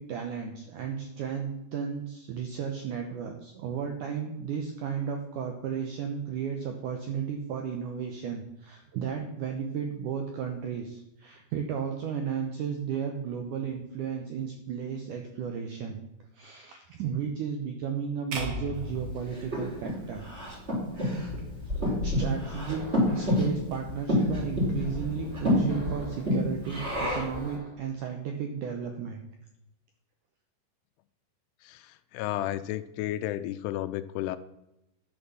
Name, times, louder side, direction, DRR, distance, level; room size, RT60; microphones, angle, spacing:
voice 1, 0.0-16.0 16.3-20.3 22.0-22.8 23.1-29.2, right 7 dB, 75° right, 4 dB, 1.8 m, -34 dB
sound 1, 18.3-20.6, equal, 55° right, 1.7 m, -37 dB
Breathing, 18.9-27.4, left 1 dB, 15° right, 3.6 m, -29 dB
sound 2, 21.1-27.8, left 2 dB, 35° right, 0.6 m, -43 dB
voice 2, 31.6-34.4, left 13 dB, 80° left, 13 dB, 2.6 m, -33 dB
11.0 x 6.6 x 7.0 m, 0.87 s
omnidirectional pair, 4.9 m